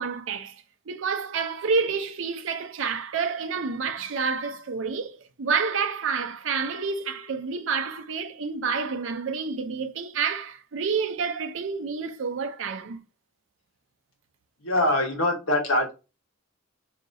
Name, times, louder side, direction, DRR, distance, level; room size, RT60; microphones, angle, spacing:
voice 1, 0.0-13.0, right 5 dB, 65° right, 0.5 m, -29 dB
voice 2, 14.6-15.9, left 1 dB, 80° left, 1.4 m, -23 dB
4.9 x 2.9 x 2.6 m
head